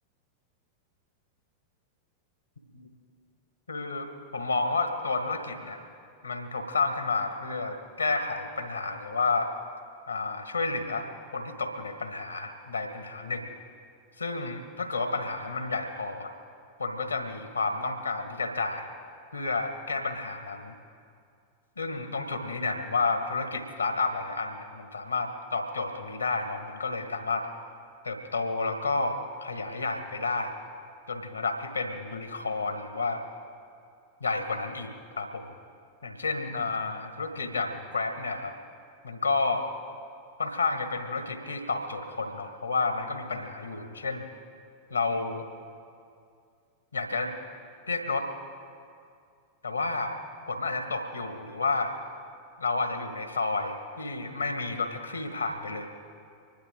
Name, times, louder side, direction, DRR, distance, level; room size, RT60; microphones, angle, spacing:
voice 1, 3.7-5.8 6.2-9.5 10.1-11.1 11.3-13.5 14.2-16.3 16.8-18.9 19.3-20.7 21.8-27.5 28.0-30.5 31.1-33.2 34.2-35.5 36.0-38.5 39.0-39.7 40.4-44.2 44.9-45.4 46.9-47.3 47.9-48.3 49.6-50.2 50.5-51.9 52.6-55.9, left 3 dB, 80° left, 6 dB, 1.5 m, -31 dB
25.5 x 11.5 x 3.8 m, 2.3 s
figure-of-eight pair, 90°, 0 cm